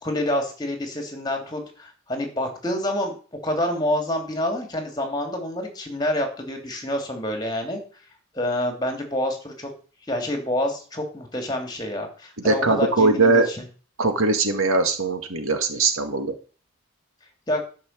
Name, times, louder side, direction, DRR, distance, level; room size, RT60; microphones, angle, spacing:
voice 1, 0.0-3.2 3.4-7.8 8.3-9.7 10.1-13.6 17.5-17.6, left 1 dB, 20° left, 4 dB, 2.9 m, -27 dB
voice 2, 12.4-13.5 14.0-16.3, right 3 dB, 85° right, 6 dB, 2.1 m, -20 dB
12.5 x 6.3 x 7.5 m, 0.40 s
head